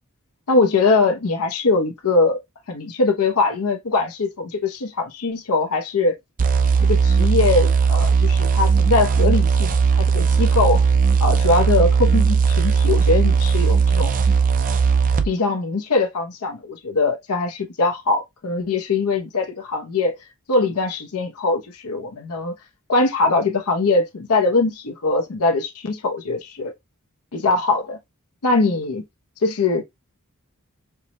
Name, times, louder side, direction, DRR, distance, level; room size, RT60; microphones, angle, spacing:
voice 1, 0.5-2.4 2.7-6.2 6.9-10.8 11.2-14.1 15.2-20.1 20.5-22.5 22.9-26.7 27.3-28.0 28.4-29.0 29.4-29.8, left 3 dB, 85° left, 0.7 m, -21 dB
sound 1, 6.4-15.3, right 5 dB, 40° right, 0.4 m, -17 dB
4.5 x 2.1 x 2.7 m
head